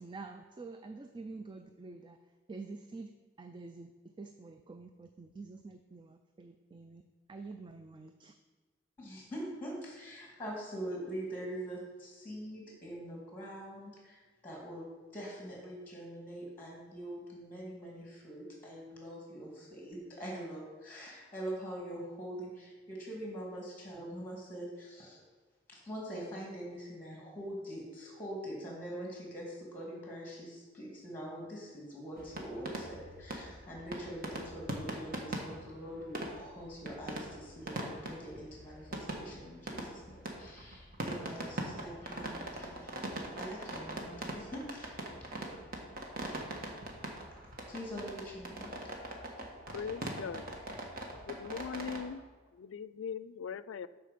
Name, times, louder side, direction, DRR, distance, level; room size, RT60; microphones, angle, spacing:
voice 1, 0.0-3.1 3.4-8.3, right 3 dB, 25° right, 7 dB, 0.4 m, -48 dB
voice 2, 9.0-25.2 25.7-43.0 43.4-45.1 47.7-48.7, equal, 10° left, -3 dB, 2.2 m, -44 dB
sound 1, 32.2-52.0, right 1 dB, 50° right, 1.4 m, -42 dB
voice 3, 49.7-50.4 51.3-52.2 52.5-53.9, left 6 dB, 85° left, 16 dB, 0.4 m, -40 dB
13.0 x 4.6 x 5.1 m, 1.4 s
head